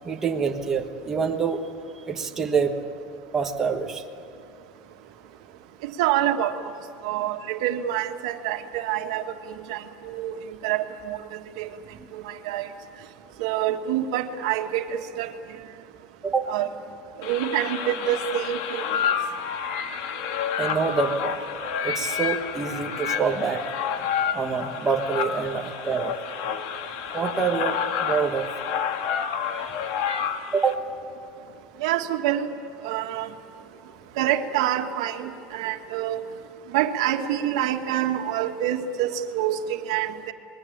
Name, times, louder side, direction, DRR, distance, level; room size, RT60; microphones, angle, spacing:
voice 1, 0.0-1.6 2.1-2.7 3.3-4.0 11.9-12.1 16.2-16.5 20.6-21.3 21.8-23.6 24.3-26.1 27.1-28.5 30.5-30.8, right 5 dB, 15° right, 2 dB, 1.3 m, -26 dB
voice 2, 6.0-6.5 7.0-9.2 9.7-10.3 10.6-11.2 11.6-11.7 12.1-12.7 13.4-15.3 16.5-16.7 17.2-18.8 31.8-32.5 32.8-33.3 34.2-36.2 36.7-40.3, right 11 dB, 90° right, 5 dB, 1.7 m, -26 dB
sound 1, 17.2-30.7, left 7 dB, 65° left, 1.7 m, -29 dB
28.0 x 21.0 x 8.7 m, 2.4 s
cardioid pair, 175°, 3 cm